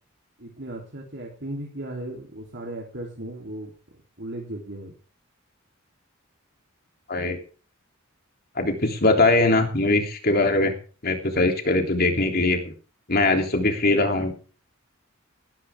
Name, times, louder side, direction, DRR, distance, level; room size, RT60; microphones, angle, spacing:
voice 1, 0.4-3.7 4.2-4.9, right 1 dB, 55° right, 0 dB, 3.4 m, -36 dB
voice 2, 8.5-10.7 11.0-12.7 13.1-14.3, left 2 dB, 45° left, 4 dB, 3.2 m, -21 dB
18.5 x 13.0 x 3.7 m, 0.38 s
head